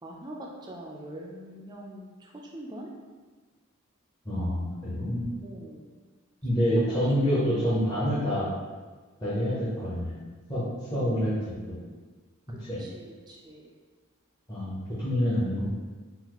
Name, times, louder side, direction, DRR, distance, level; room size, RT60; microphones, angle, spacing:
voice 1, 0.0-2.9 5.4-5.9 6.5-7.0 12.5-13.7, right 1 dB, 20° right, -1 dB, 0.4 m, -43 dB
voice 2, 4.2-5.2 6.4-8.5 9.2-10.2 10.5-10.6 10.9-11.8 12.6-12.8 14.5-15.7, equal, 20° left, -11 dB, 0.7 m, -27 dB
3.9 x 2.4 x 2.9 m, 1.4 s
head